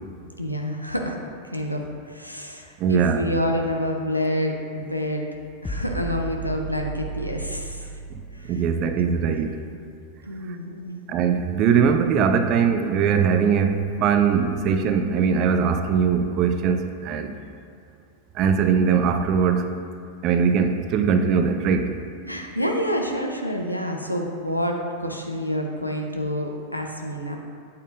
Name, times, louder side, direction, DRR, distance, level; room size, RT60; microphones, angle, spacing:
voice 1, 0.4-5.3 5.6-7.9 8.3-8.6 9.5-9.6 10.2-11.0 22.3-27.4, equal, 90° left, 2 dB, 0.8 m, -28 dB
voice 2, 2.8-3.3 8.5-9.6 11.1-17.3 18.3-19.8 20.2-22.0, right 6 dB, 35° right, 7 dB, 0.6 m, -21 dB
sound 1, 5.6-9.1, right 3 dB, 10° left, 0.4 m, -34 dB
8.4 x 8.3 x 2.6 m, 2.3 s
figure-of-eight pair, 90°, 0 cm